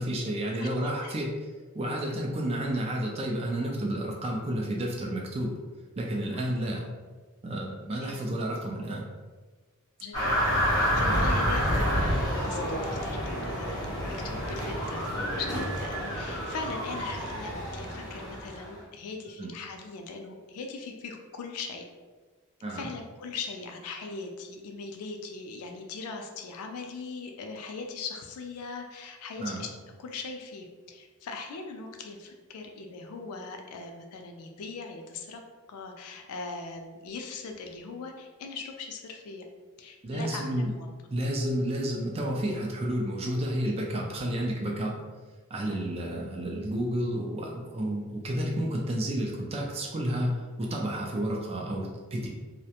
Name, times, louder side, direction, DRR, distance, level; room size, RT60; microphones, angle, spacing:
voice 1, 0.0-1.3 1.7-5.6 6.0-6.9 7.4-9.1 11.1-11.3 19.4-19.5 22.6-22.9 29.4-29.6 40.0-40.7 41.1-45.0 45.5-52.3, right 1 dB, 30° right, -1 dB, 0.3 m, -31 dB
voice 2, 0.6-1.1 2.1-2.3 6.3-6.5 8.0-8.2 10.0-10.4 10.8-21.8 22.7-29.7 30.0-35.4 35.7-39.4 39.8-40.9 45.7-45.9, left 4 dB, 90° left, 3 dB, 0.4 m, -40 dB
sound 1, 10.1-18.7, equal, 20° left, 0.8 m, -29 dB
2.4 x 2.1 x 2.8 m, 1.3 s
head